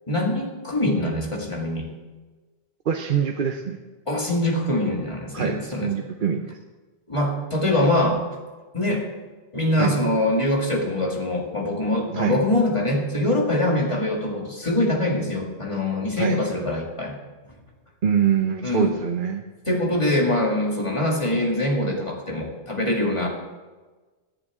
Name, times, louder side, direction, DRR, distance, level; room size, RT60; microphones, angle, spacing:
voice 1, 0.1-1.9 4.1-5.9 7.1-8.2 8.7-9.1 9.5-17.2 18.6-18.9 19.7-23.3, left 1 dB, 30° left, -1 dB, 2.1 m, -23 dB
voice 2, 2.9-3.8 5.3-6.6 9.8-10.0 12.1-12.4 16.1-16.4 18.0-20.0, right 7 dB, 55° right, 5 dB, 0.8 m, -24 dB
18.0 x 11.0 x 3.6 m, 1.3 s
omnidirectional pair, 1.1 m